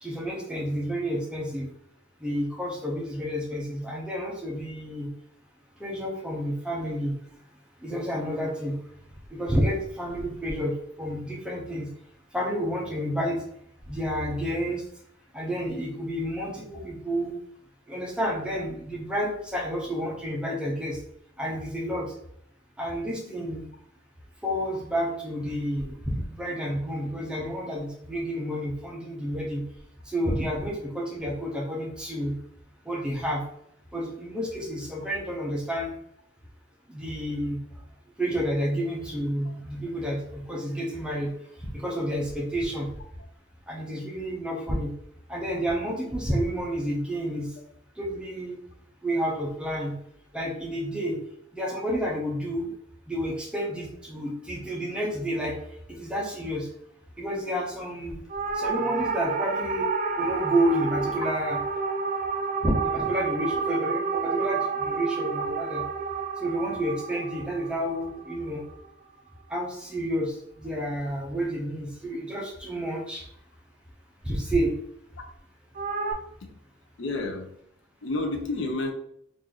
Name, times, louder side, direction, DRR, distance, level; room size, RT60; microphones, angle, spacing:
voice 1, 0.0-1.7 2.2-5.1 5.8-7.1 7.8-8.8 9.3-11.9 12.3-13.4 13.9-14.8 15.3-17.4 17.9-21.0 21.4-22.1 22.8-23.6 24.4-29.7 30.1-32.4 32.8-33.4 33.9-35.9 36.9-37.6 38.2-41.3 41.6-42.9 43.7-44.9 45.3-47.5 48.0-48.6 49.0-50.0 50.3-51.2 51.5-52.7 53.1-55.6 55.9-56.7 57.2-58.2 58.5-59.9 60.2-61.6 62.6-65.8 66.4-68.6 69.5-73.2 74.2-74.7, equal, 5° right, -2 dB, 0.6 m, -30 dB
sound 1, 58.3-68.8 75.7-76.1, right 5 dB, 40° right, 0.3 m, -30 dB
voice 2, 77.0-77.5 78.0-78.9, left 2 dB, 70° left, 4 dB, 0.5 m, -29 dB
3.0 x 2.5 x 3.8 m, 0.70 s
head